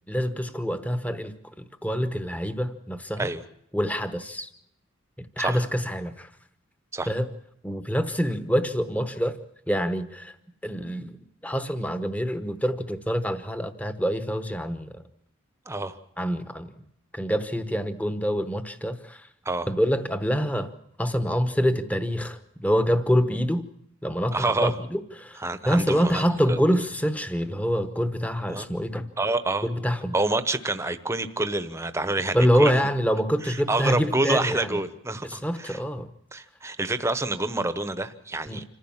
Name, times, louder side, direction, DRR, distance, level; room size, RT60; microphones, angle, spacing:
voice 1, 0.1-3.3 3.7-4.5 5.2-6.3 7.1-7.3 7.6-9.4 9.7-10.3 10.6-15.0 16.2-16.7 17.1-19.3 19.7-20.7 21.0-23.7 24.0-29.1 29.6-30.1 32.3-34.8 35.2-36.1 38.5-38.6, equal, 5° left, 10 dB, 1.0 m, -26 dB
voice 2, 15.7-16.0 19.4-19.7 24.3-24.8 25.4-26.6 28.5-28.7 29.2-29.7 30.1-32.9 33.4-35.8 36.3-38.6, right 2 dB, 15° right, 11 dB, 1.0 m, -27 dB
26.5 x 15.0 x 7.3 m, 0.78 s
head